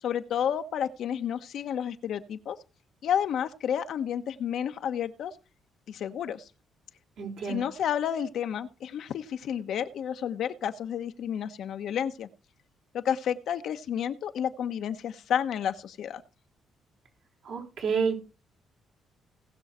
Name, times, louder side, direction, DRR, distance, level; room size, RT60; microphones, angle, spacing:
voice 1, 0.0-2.6 3.0-5.3 5.9-6.5 7.4-12.3 12.9-16.2, left 9 dB, 70° left, 8 dB, 1.1 m, -31 dB
voice 2, 7.2-7.7 17.4-18.2, right 6 dB, 75° right, 0 dB, 5.0 m, -29 dB
18.5 x 6.4 x 4.4 m, 0.32 s
cardioid pair, 90°, 0 cm